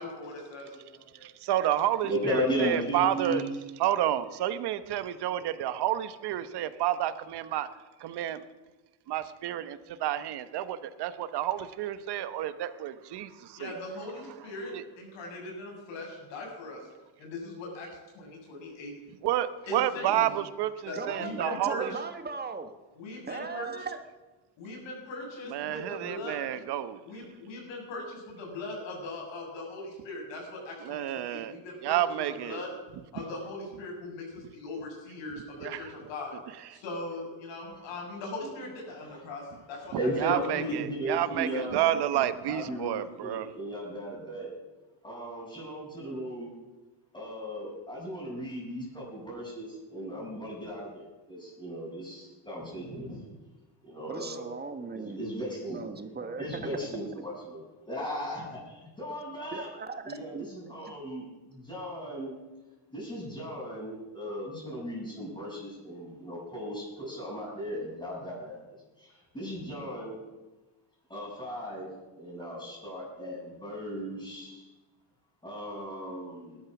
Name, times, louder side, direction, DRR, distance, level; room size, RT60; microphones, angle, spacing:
voice 1, 0.0-1.3 13.5-16.9 17.2-17.9 18.1-18.9 19.7-20.4 20.9-21.8 23.0-23.7 24.6-26.6 27.0-32.0 32.4-32.7 33.1-36.3 36.6-40.1 40.7-40.8 41.5-41.7 42.1-42.2, left 2 dB, 75° left, 0 dB, 7.3 m, -40 dB
voice 2, 1.2-3.4 3.8-7.7 8.0-8.4 9.1-13.7 14.7-14.8 19.2-21.9 25.5-27.0 30.8-31.5 31.8-32.6 35.6-35.8 40.2-43.5, right 12 dB, 60° right, 12 dB, 1.2 m, -30 dB
voice 3, 2.0-3.5 39.1-39.2 39.9-42.0 42.5-44.5 45.0-46.5 47.1-53.3 53.8-54.5 54.9-55.8 56.4-59.7 60.0-62.3 62.9-68.6 69.0-70.2 71.1-71.9 72.2-74.7 75.4-76.6, equal, 10° left, -8 dB, 6.7 m, -36 dB
voice 4, 20.9-22.7 23.3-24.0 54.1-55.2 55.7-56.9 59.5-60.5 60.8-60.9, right 4 dB, 20° right, 8 dB, 1.4 m, -38 dB
19.5 x 12.0 x 6.1 m, 1.2 s
cardioid pair, 135°, 44 cm